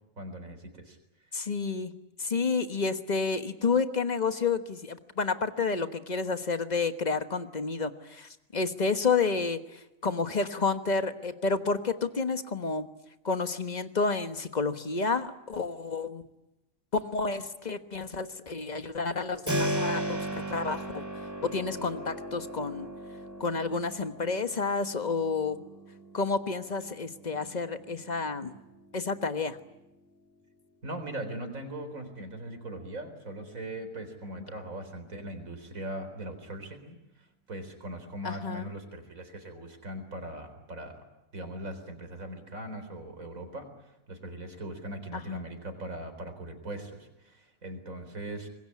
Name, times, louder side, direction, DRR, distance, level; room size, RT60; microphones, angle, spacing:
voice 1, 0.2-1.0 30.8-41.0 41.3-43.7 44.1-48.5, right 1 dB, 75° right, 7 dB, 4.4 m, -40 dB
voice 2, 1.3-1.9 2.2-12.9 13.2-16.2 16.9-21.0 21.5-22.9 23.4-25.6 26.1-28.5 28.9-29.6 38.2-38.7 45.1-45.5, left 4 dB, 30° left, 9 dB, 1.4 m, -30 dB
Keyboard (musical), 19.5-30.1, right 1 dB, 10° right, 2.7 m, -37 dB
25.5 x 21.5 x 9.8 m, 0.94 s
omnidirectional pair, 1.4 m